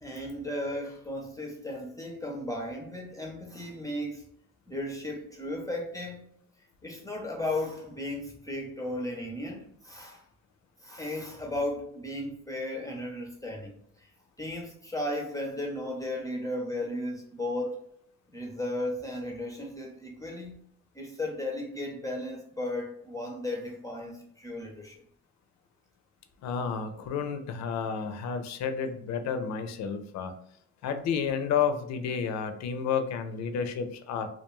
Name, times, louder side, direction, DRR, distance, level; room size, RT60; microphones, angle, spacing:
voice 1, 0.0-4.2 4.7-6.2 6.8-10.2 10.8-13.7 14.0-14.1 14.4-17.8 18.3-20.6 20.9-25.0, left 1 dB, 10° left, 0 dB, 0.5 m, -35 dB
voice 2, 26.4-30.3 30.8-34.3, left 6 dB, 65° left, 8 dB, 0.5 m, -31 dB
2.3 x 2.2 x 2.9 m, 0.65 s
cardioid pair, 90°, 30 cm